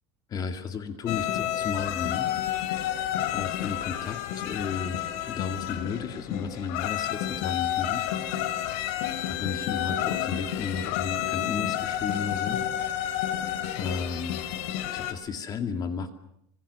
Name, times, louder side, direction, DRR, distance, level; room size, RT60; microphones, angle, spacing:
voice 1, 0.3-2.3 3.3-5.0 5.3-8.1 9.3-12.6 13.8-14.4 14.9-16.1, left 5 dB, 25° left, 7 dB, 2.3 m, -33 dB
sound 1, 1.1-15.1, left 11 dB, 65° left, 2.8 m, -30 dB
26.5 x 24.5 x 6.9 m, 0.72 s
cardioid pair, 170°, 15 cm